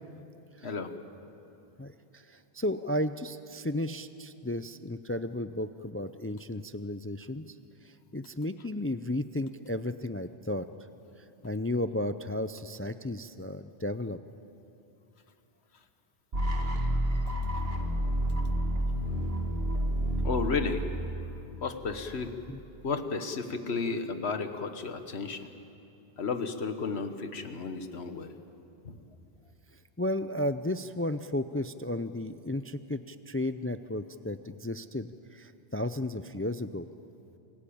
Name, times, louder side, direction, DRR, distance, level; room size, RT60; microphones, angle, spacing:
voice 1, 0.6-0.9 20.0-20.8 21.6-22.3 22.8-25.5 26.2-28.3 28.8-29.0, left 4 dB, 85° left, 8 dB, 1.6 m, -33 dB
voice 2, 1.8-7.4 8.1-10.7 11.4-14.2 22.5-22.6 30.0-36.9, left 1 dB, 25° left, 11 dB, 0.3 m, -33 dB
sound 1, 16.3-22.3, right 1 dB, 65° right, 2.3 m, -30 dB
27.0 x 16.5 x 8.7 m, 2.8 s
omnidirectional pair, 1.1 m